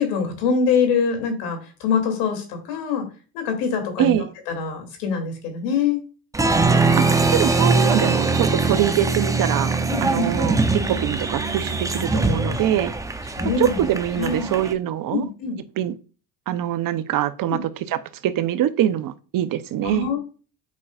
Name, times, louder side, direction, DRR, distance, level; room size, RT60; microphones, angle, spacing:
voice 1, 0.0-3.1 3.3-6.0 9.9-10.3 13.4-13.8 14.2-14.5 15.1-15.6 17.5-17.6 19.8-20.2, left 6 dB, 80° left, 2.8 m, -24 dB
Applause, 6.3-14.7, right 3 dB, 5° right, 0.6 m, -22 dB
voice 2, 7.0-10.6 10.9-12.9 13.6-15.2 15.8-15.9 16.5-20.1, right 11 dB, 45° right, 0.8 m, -24 dB
8.4 x 5.5 x 2.4 m
supercardioid pair, 95°, 46 cm